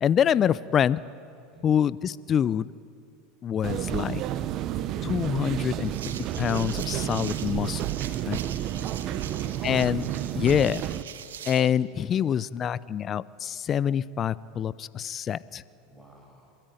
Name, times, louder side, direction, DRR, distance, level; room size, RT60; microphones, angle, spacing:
voice 1, 0.0-1.0 1.6-2.7 3.4-4.2 5.0-5.9 6.4-7.9 8.3-8.4 9.6-10.1 10.3-10.8 11.5-15.6, left 9 dB, 35° left, 19 dB, 0.5 m, -25 dB
sound 1, 3.6-11.0, right 12 dB, 50° right, 0.9 m, -31 dB
sound 2, 5.8-11.7, right 9 dB, 85° right, 1.4 m, -42 dB
voice 2, 8.2-9.2 15.8-16.6, equal, ahead, -1 dB, 6.4 m, -53 dB
29.0 x 13.5 x 9.1 m, 2.5 s
hypercardioid pair, 95°, 0 cm